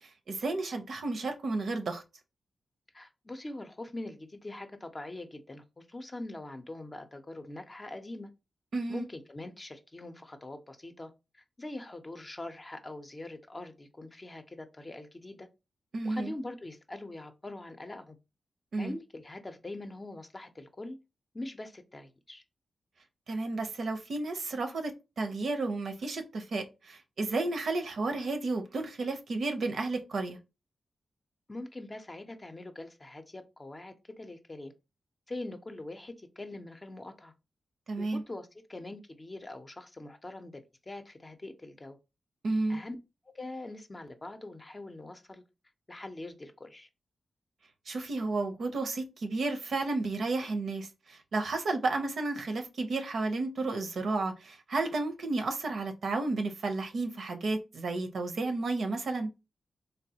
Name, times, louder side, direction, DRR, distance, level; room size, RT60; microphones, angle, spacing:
voice 1, 0.0-2.0 8.7-9.1 15.9-16.3 18.7-18.9 23.3-30.4 37.9-38.2 42.4-42.8 47.9-59.3, right 3 dB, 75° right, 0.6 m, -32 dB
voice 2, 2.9-8.3 8.9-15.5 16.0-18.2 18.8-21.0 21.3-22.4 31.5-34.7 35.3-37.3 38.0-42.0 42.7-43.0 43.3-45.4 45.9-46.9, left 2 dB, 30° left, 0.5 m, -43 dB
3.3 x 2.3 x 2.8 m
cardioid pair, 60°, 0 cm